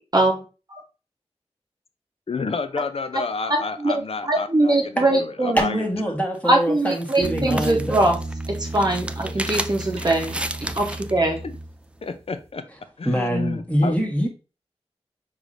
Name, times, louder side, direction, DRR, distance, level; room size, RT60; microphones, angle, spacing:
voice 1, 2.3-5.8 9.4-9.5 11.4-11.6 12.0-14.0, left 4 dB, 60° left, 0.5 m, -30 dB
voice 2, 3.5-3.9 4.2-5.6 6.4-8.2 8.6-10.4 10.7-11.4, right 1 dB, 35° right, 0.8 m, -21 dB
voice 3, 5.5-8.0 13.0-14.3, equal, 10° left, 1.2 m, -24 dB
sound 1, 6.3-11.2, right 1 dB, 10° right, 0.3 m, -33 dB
sound 2, 7.2-12.1, right 2 dB, 70° right, 0.7 m, -33 dB
4.8 x 3.1 x 2.5 m
cardioid pair, 45°, 11 cm